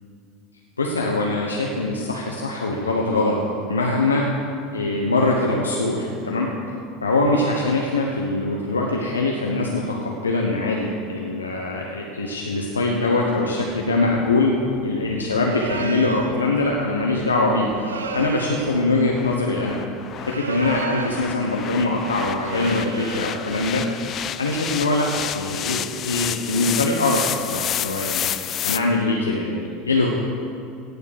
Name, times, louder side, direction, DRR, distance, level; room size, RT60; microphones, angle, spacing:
voice 1, 0.8-3.4 3.7-4.2 4.7-6.5 7.0-14.5 14.8-17.7 18.1-19.8 20.3-23.8 24.4-25.1 25.3-25.8 26.0-28.3 28.6-30.1, left 2 dB, 90° left, -1 dB, 1.1 m, -22 dB
sound 1, 13.7-28.8, left 10 dB, 40° left, 0.5 m, -31 dB
sound 2, 15.4-16.4 17.8-18.8 20.2-21.4 22.4-23.4, right 5 dB, 85° right, 0.8 m, -32 dB
17.5 x 7.0 x 6.6 m, 2.4 s
hypercardioid pair, 75°, 0 cm